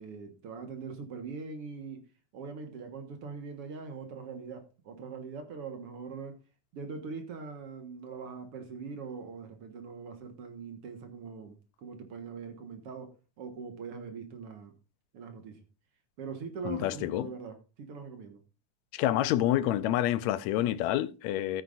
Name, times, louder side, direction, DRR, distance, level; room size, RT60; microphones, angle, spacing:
voice 1, 0.0-2.0 2.3-6.4 6.7-14.7 15.1-15.6 16.2-18.4, right 5 dB, 55° right, 2.1 m, -42 dB
voice 2, 16.6-17.3 18.9-21.6, left 13 dB, 75° left, 1.8 m, -28 dB
14.0 x 9.2 x 2.5 m
omnidirectional pair, 3.6 m